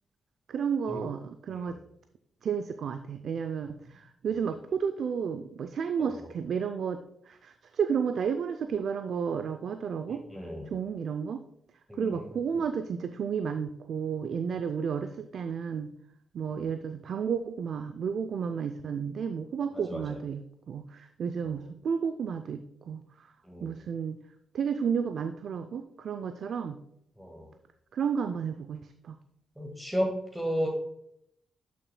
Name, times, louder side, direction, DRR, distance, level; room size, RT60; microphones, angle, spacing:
voice 1, 0.5-1.8 2.4-10.2 10.6-11.4 11.9-15.9 16.3-23.3 23.6-24.2 24.5-26.8 27.9-29.2, right 6 dB, 65° right, 9 dB, 0.4 m, -32 dB
voice 2, 10.3-10.7 11.9-12.2 16.5-16.6 19.9-20.0 23.5-23.7 27.2-27.5 29.6-30.7, equal, 5° right, 0 dB, 1.7 m, -33 dB
10.5 x 5.9 x 2.2 m, 0.75 s
supercardioid pair, 50°, 0 cm